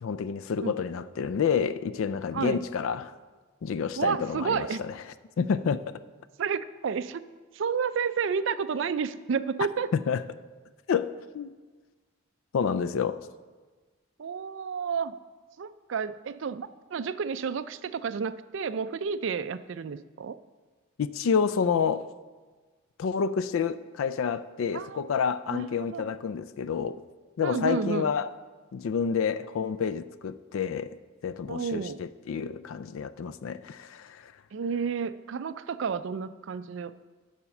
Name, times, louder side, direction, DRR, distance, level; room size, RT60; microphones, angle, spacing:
voice 1, 0.0-3.1 3.6-4.9 5.4-5.8 9.9-10.2 10.9-11.5 12.5-13.2 21.0-22.1 23.0-27.0 27.4-28.3 28.7-31.0 31.2-34.3, left 6 dB, 70° left, 0.3 m, -29 dB
voice 2, 4.0-4.8 6.4-7.2 7.5-9.9 14.2-15.2 15.6-20.4 24.7-25.0 25.5-26.1 27.4-28.1 31.5-32.0 34.5-37.1, right 6 dB, 60° right, 0.4 m, -31 dB
12.0 x 4.3 x 7.0 m
head